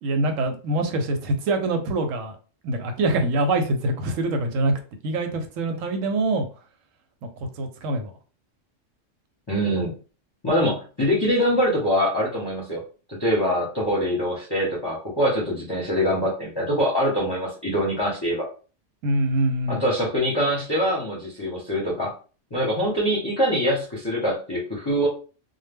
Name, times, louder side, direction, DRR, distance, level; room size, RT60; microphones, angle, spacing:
voice 1, 0.0-2.3 2.6-4.7 5.0-6.5 7.2-8.1 19.0-19.8, right 2 dB, 90° right, 6 dB, 1.0 m, -24 dB
voice 2, 9.5-9.9 10.4-12.8 13.1-18.5 19.7-22.1 22.5-25.1, equal, 30° left, -4 dB, 0.5 m, -24 dB
2.1 x 2.0 x 3.3 m, 0.36 s
omnidirectional pair, 1.3 m